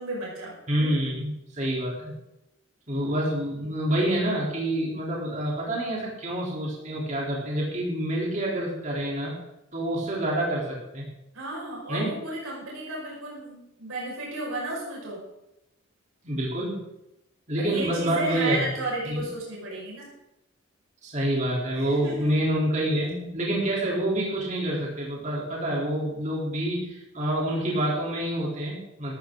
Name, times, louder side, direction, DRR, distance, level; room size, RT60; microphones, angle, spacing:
voice 1, 0.0-0.6 11.3-15.2 17.6-20.1 21.7-22.3, right 2 dB, 85° right, -4 dB, 5.5 m, -33 dB
voice 2, 0.7-2.1 2.9-9.3 9.7-11.0 11.9-12.1 16.2-16.8 17.5-18.7 19.0-19.3 21.0-29.1, right 1 dB, 35° right, -3 dB, 3.6 m, -27 dB
15.0 x 13.0 x 3.9 m, 0.89 s
head